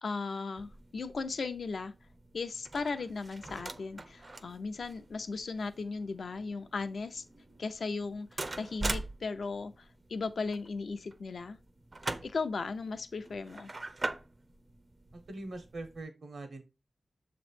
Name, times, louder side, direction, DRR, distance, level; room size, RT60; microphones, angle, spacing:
voice 1, 0.0-1.9 2.3-7.2 7.6-11.6 12.2-13.7, left 4 dB, 80° left, 0.6 m, -37 dB
sound 1, 0.6-16.0, right 2 dB, 35° right, 0.5 m, -43 dB
voice 2, 15.1-16.6, right 2 dB, 75° right, 1.3 m, -43 dB
7.1 x 3.1 x 4.3 m
wide cardioid pair, 90°, 0 cm